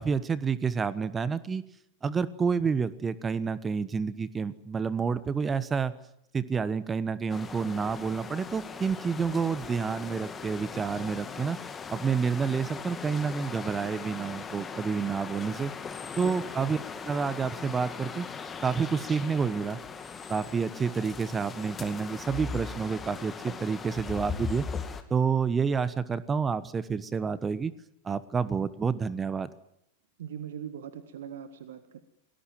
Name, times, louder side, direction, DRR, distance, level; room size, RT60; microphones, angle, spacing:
voice 1, 0.0-1.6 2.0-5.9 6.3-15.7 16.2-16.8 17.0-18.3 18.6-19.8 20.3-24.6 25.1-27.7 28.0-29.5, right 5 dB, 15° right, 17 dB, 1.2 m, -29 dB
sound 1, 7.3-25.0, left 5 dB, 20° left, 2.3 m, -39 dB
voice 2, 30.2-32.0, right 9 dB, 60° right, 11 dB, 1.8 m, -40 dB
29.0 x 19.5 x 7.5 m, 0.79 s
figure-of-eight pair, 90°, 0 cm